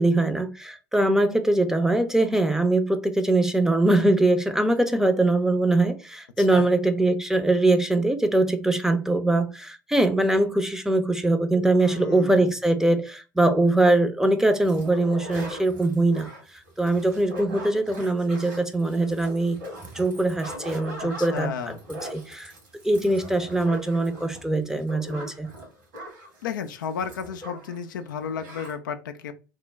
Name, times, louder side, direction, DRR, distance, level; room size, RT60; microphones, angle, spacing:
voice 1, 0.0-16.3 16.8-19.6 19.9-21.5 21.9-22.5 22.8-25.5, right 2 dB, 5° right, 0.6 m, -22 dB
voice 2, 6.4-6.7 11.8-12.4 21.0-21.8 26.4-29.3, left 7 dB, 75° left, 0.4 m, -33 dB
sound 1, 14.6-27.8 28.1-28.2 28.4-28.7, equal, 75° right, 1.6 m, -40 dB
3.1 x 2.1 x 3.4 m
figure-of-eight pair, 70°, 11 cm